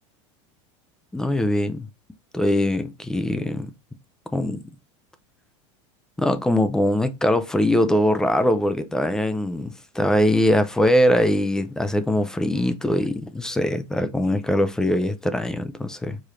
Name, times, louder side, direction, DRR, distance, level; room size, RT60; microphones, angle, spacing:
voice 1, 1.1-1.9 2.3-3.7 4.3-4.6 6.2-16.2, left 1 dB, 5° left, 0.3 m, -22 dB
4.9 x 2.4 x 4.2 m
supercardioid pair, 175°, 16 cm